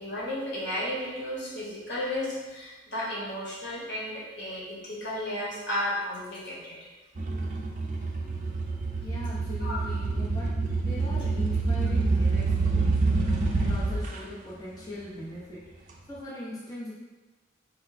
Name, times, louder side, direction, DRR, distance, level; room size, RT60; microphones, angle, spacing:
voice 1, 0.0-6.9 9.6-9.8, left 1 dB, 60° left, -7 dB, 1.5 m, -33 dB
sound 1, 7.2-14.2, right 3 dB, 40° right, 0.5 m, -27 dB
voice 2, 9.0-16.9, left 1 dB, 20° left, -9 dB, 0.8 m, -40 dB
4.3 x 2.2 x 4.1 m, 1.2 s
head